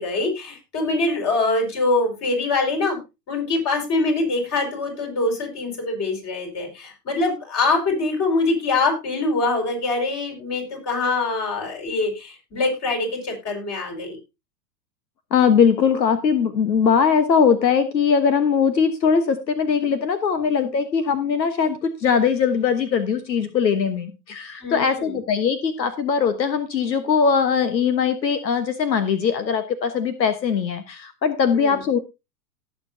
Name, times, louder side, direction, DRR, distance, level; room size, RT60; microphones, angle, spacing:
voice 1, 0.0-3.0 3.3-14.2 24.6-25.2 31.5-31.8, left 3 dB, 30° left, 2 dB, 5.3 m, -24 dB
voice 2, 15.3-32.0, left 6 dB, 85° left, 11 dB, 1.3 m, -20 dB
18.5 x 7.2 x 2.7 m, 0.25 s
hypercardioid pair, 105°, 50 cm